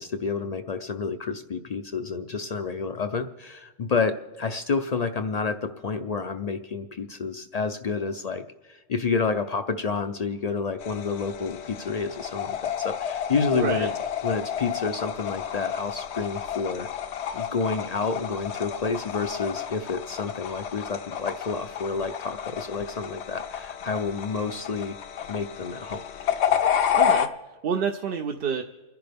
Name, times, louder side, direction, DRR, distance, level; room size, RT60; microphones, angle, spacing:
voice 1, 0.0-13.9 14.2-16.9 17.3-25.0 25.3-26.0, left 4 dB, 50° left, 8 dB, 0.5 m, -29 dB
sound 1, 10.8-27.3, left 9 dB, 70° left, 1.0 m, -30 dB
voice 2, 13.5-13.9 26.9-28.6, right 6 dB, 60° right, 5 dB, 0.8 m, -29 dB
28.5 x 10.5 x 3.5 m, 1.2 s
omnidirectional pair, 1.2 m